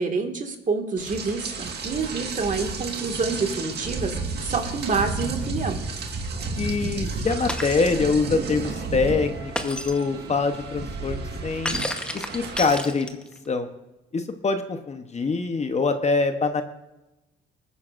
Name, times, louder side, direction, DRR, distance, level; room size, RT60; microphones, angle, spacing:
voice 1, 0.0-5.8, right 4 dB, 40° right, 4 dB, 1.9 m, -27 dB
Rain, 1.0-12.8, right 4 dB, 55° right, 1.6 m, -32 dB
voice 2, 6.6-11.8 12.1-13.1 13.5-13.7 14.1-16.6, left 4 dB, 35° left, 8 dB, 0.9 m, -24 dB
Shatter, 7.5-7.9 9.6-10.0 11.7-13.4, left 1 dB, 5° left, 1.0 m, -31 dB
21.5 x 9.6 x 2.5 m, 1.0 s
cardioid pair, 90°, 20 cm